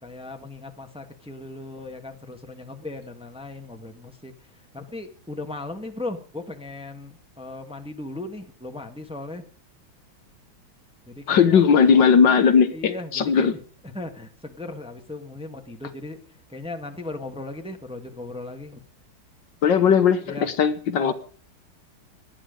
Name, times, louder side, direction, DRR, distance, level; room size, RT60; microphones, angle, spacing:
voice 1, 0.0-4.3 4.7-9.4 11.0-11.6 12.7-13.6 13.9-16.2 16.5-18.8 20.3-20.5 21.0-21.1, left 2 dB, 5° right, 5 dB, 1.4 m, -37 dB
voice 2, 11.3-13.5 19.6-21.1, left 6 dB, 65° left, 10 dB, 1.7 m, -18 dB
19.0 x 11.5 x 5.2 m, 0.43 s
omnidirectional pair, 2.2 m